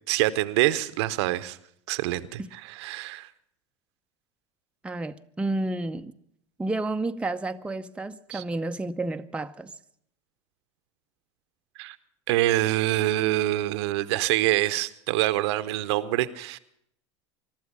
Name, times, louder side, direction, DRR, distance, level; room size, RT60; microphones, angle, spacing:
voice 1, 0.1-1.6 1.9-3.3 8.3-8.4 11.8-12.0 12.3-16.6, right 16 dB, 65° right, 0.8 m, -25 dB
voice 2, 4.8-6.1 6.6-9.7, right 2 dB, 5° right, 0.6 m, -31 dB
22.0 x 12.0 x 5.3 m
hypercardioid pair, 80°, 15 cm